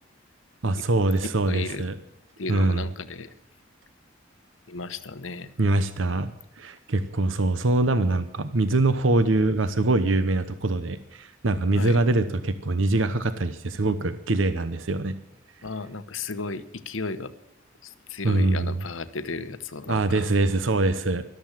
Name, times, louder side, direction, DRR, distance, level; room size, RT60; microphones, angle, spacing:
voice 1, 0.6-1.9 2.5-2.8 5.6-6.3 6.6-15.2 18.2-18.7 19.9-21.2, right 2 dB, 80° right, 12 dB, 0.9 m, -23 dB
voice 2, 1.4-1.8 2.4-3.3 4.7-5.5 11.7-12.0 15.6-17.3 17.8-20.3, left 3 dB, 85° left, 12 dB, 1.1 m, -34 dB
13.5 x 12.5 x 7.3 m, 0.82 s
head